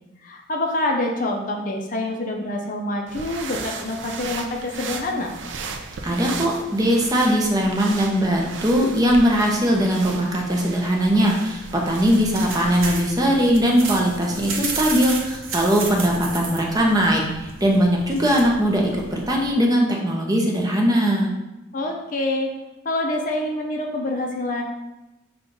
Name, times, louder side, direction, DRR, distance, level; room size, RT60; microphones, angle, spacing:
voice 1, 0.2-5.3 21.7-22.5 22.8-24.6, left 1 dB, 40° left, 1 dB, 0.5 m, -26 dB
sound 1, 3.1-13.0, right 4 dB, 65° right, 0.4 m, -36 dB
voice 2, 6.0-21.3, equal, 20° right, 0 dB, 0.6 m, -20 dB
sound 2, 11.6-19.5, right 3 dB, 85° right, 0.8 m, -33 dB
5.5 x 2.3 x 3.8 m, 0.99 s
head